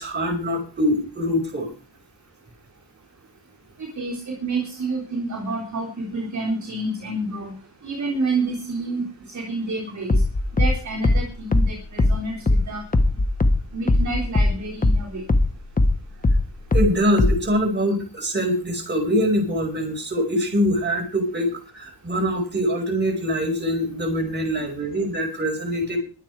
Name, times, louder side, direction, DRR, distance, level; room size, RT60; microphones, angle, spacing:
voice 1, 0.0-1.7 16.7-26.0, equal, 25° right, 2 dB, 5.3 m, -23 dB
voice 2, 4.0-7.5 7.8-9.1 9.3-10.2 10.5-12.8 13.7-15.2, right 2 dB, 45° right, -2 dB, 3.8 m, -28 dB
sound 1, 10.1-15.0 15.3-17.5, left 2 dB, 20° left, 1.2 m, -19 dB
23.0 x 8.5 x 4.8 m, 0.36 s
wide cardioid pair, 180°, 40 cm